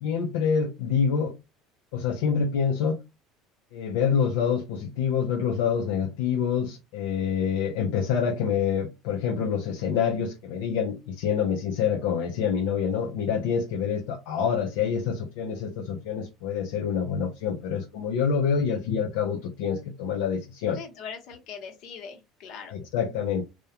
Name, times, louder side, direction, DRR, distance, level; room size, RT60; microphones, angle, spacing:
voice 1, 0.0-1.3 1.9-3.0 3.7-20.8 22.7-23.4, left 7 dB, 85° left, 0.5 m, -26 dB
voice 2, 20.7-22.7, left 6 dB, 60° left, 0.9 m, -41 dB
2.3 x 2.1 x 2.8 m
supercardioid pair, 120°, 0 cm